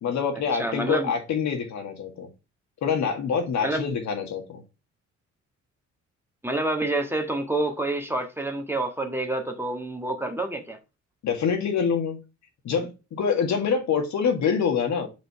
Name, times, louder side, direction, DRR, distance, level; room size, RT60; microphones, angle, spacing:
voice 1, 0.0-2.3 2.8-4.6 11.2-12.2 12.6-15.1, left 6 dB, 65° left, 1.8 m, -26 dB
voice 2, 0.5-1.1 3.6-3.9 6.4-10.8, right 2 dB, 10° right, 1.4 m, -28 dB
5.1 x 5.1 x 4.6 m
cardioid pair, 90°, 30 cm